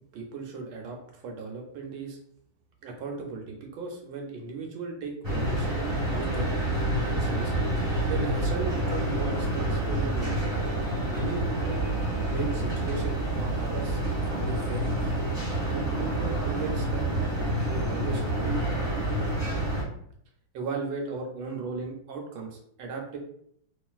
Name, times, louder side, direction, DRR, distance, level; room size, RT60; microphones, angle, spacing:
voice 1, 0.1-2.2 2.8-5.8 6.1-6.5 7.0-7.5 8.1-10.6 11.1-11.8 12.1-15.1 15.7-17.1 17.6-18.6 20.5-23.2, right 4 dB, 75° right, 1 dB, 1.2 m, -36 dB
sound 1, 5.2-19.8, right 1 dB, 20° right, 0.8 m, -28 dB
3.1 x 2.4 x 2.3 m, 0.68 s
omnidirectional pair, 2.3 m